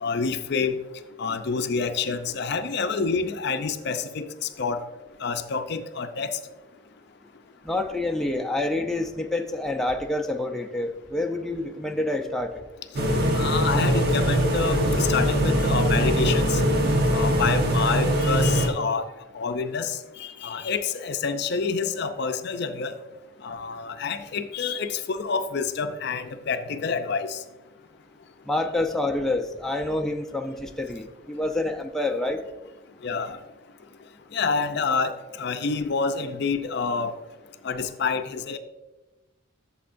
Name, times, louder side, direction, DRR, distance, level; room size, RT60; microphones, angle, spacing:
voice 1, 0.0-0.7 1.2-4.8 5.2-6.4 13.4-16.6 17.1-19.1 19.3-22.9 23.4-27.4 33.0-33.4 34.3-37.1 37.6-38.6, left 5 dB, 55° left, 9 dB, 0.5 m, -28 dB
voice 2, 7.6-12.6 28.5-32.4, left 2 dB, ahead, 2 dB, 0.5 m, -27 dB
sound 1, 13.0-18.7, equal, 55° right, 1.3 m, -22 dB
13.0 x 7.0 x 2.6 m, 1.1 s
head